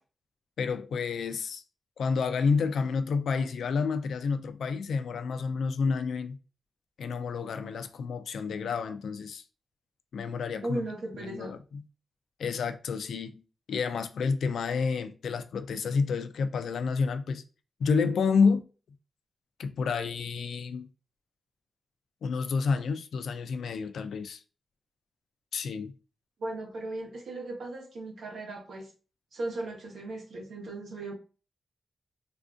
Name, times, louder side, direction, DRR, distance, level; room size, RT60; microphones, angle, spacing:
voice 1, 0.6-1.6 2.0-6.4 7.0-9.4 10.1-10.8 11.1-11.8 12.4-13.4 13.7-17.4 17.8-18.6 19.6-20.9 22.2-24.4 25.5-25.9, left 5 dB, 85° left, 0.3 m, -29 dB
voice 2, 10.6-11.5 26.4-28.9 29.3-31.1, right 2 dB, 90° right, 0.9 m, -37 dB
3.5 x 2.5 x 2.4 m
wide cardioid pair, 160°, 0 cm